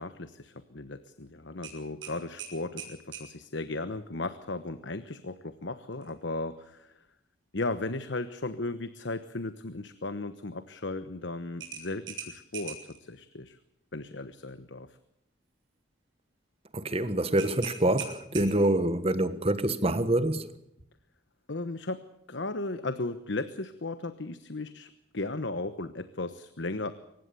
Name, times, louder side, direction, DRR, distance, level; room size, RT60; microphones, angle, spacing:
voice 1, 0.0-7.0 7.5-13.6 13.9-15.0 21.5-22.0 22.3-26.9, left 2 dB, 65° left, 1.2 m, -36 dB
sound 1, 1.6-3.3 5.9-6.1 6.6-6.7 11.6-13.0 17.4-18.8, right 7 dB, 75° right, 7.1 m, -41 dB
voice 2, 16.7-20.5, right 1 dB, 30° right, 1.4 m, -26 dB
23.5 x 19.5 x 7.0 m
head